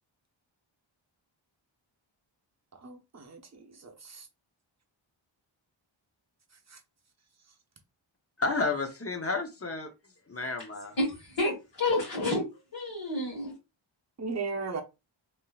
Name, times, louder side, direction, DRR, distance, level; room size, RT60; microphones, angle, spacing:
voice 1, 2.8-4.3 6.7-6.8 14.2-14.8, right 4 dB, 35° right, 0.8 m, -37 dB
voice 2, 8.4-9.9 10.3-10.9, left 3 dB, 30° left, 0.8 m, -31 dB
voice 3, 11.0-12.4 12.7-13.5, left 2 dB, 60° left, 1.7 m, -29 dB
3.5 x 2.8 x 2.4 m
wide cardioid pair, 80°, 48 cm